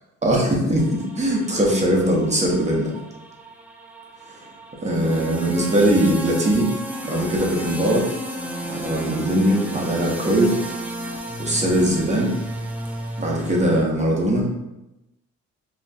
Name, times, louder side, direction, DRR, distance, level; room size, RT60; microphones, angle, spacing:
voice 1, 0.2-2.9 4.3-4.4 4.8-6.8 7.0-8.1 8.6-10.6 11.4-12.3 13.2-14.5, right 1 dB, 25° right, -2 dB, 0.9 m, -20 dB
sound 1, 0.8-13.8, right 1 dB, 5° right, 0.3 m, -33 dB
3.9 x 2.3 x 2.3 m, 0.92 s
cardioid pair, 90°, 30 cm